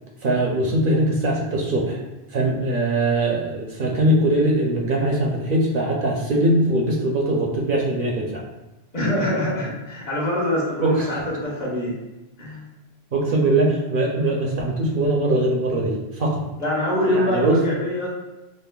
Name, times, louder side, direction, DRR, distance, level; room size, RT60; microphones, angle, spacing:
voice 1, 0.2-2.0 2.3-8.4 10.8-11.1 13.1-16.4 17.0-17.6, right 1 dB, 60° right, -2 dB, 0.7 m, -21 dB
voice 2, 8.9-12.0 12.4-12.7 16.6-18.1, left 1 dB, 40° left, -5 dB, 1.1 m, -24 dB
5.4 x 2.1 x 2.2 m, 1.0 s
omnidirectional pair, 1.1 m